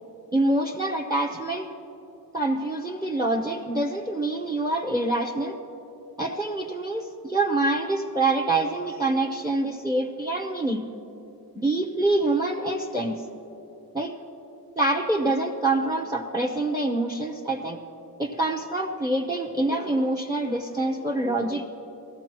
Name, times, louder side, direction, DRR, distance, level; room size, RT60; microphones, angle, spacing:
voice 1, 0.3-1.7 2.3-5.6 6.2-10.9 11.5-13.2 13.9-14.1 14.8-17.8 18.2-21.7, right 2 dB, 10° right, 3 dB, 0.8 m, -26 dB
19.0 x 14.5 x 3.0 m, 3.0 s
wide cardioid pair, 75°, 39 cm